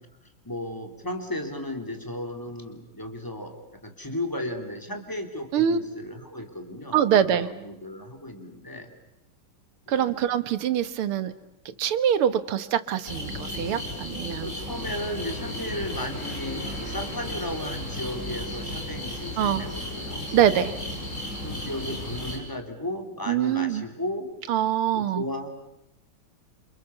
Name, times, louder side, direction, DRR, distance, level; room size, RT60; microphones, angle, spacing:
voice 1, 0.2-8.9 9.9-10.3 14.4-20.7 21.4-24.3 24.9-25.5, left 1 dB, 10° left, 5 dB, 3.2 m, -35 dB
voice 2, 6.9-7.5 9.9-11.3 11.7-14.5 19.4-19.6 20.3-20.7 23.3-23.8 24.5-25.2, right 9 dB, 90° right, 12 dB, 2.1 m, -24 dB
sound 1, 13.0-22.4, left 1 dB, 35° left, 6.7 m, -34 dB
28.5 x 27.5 x 7.1 m, 0.86 s
omnidirectional pair, 2.3 m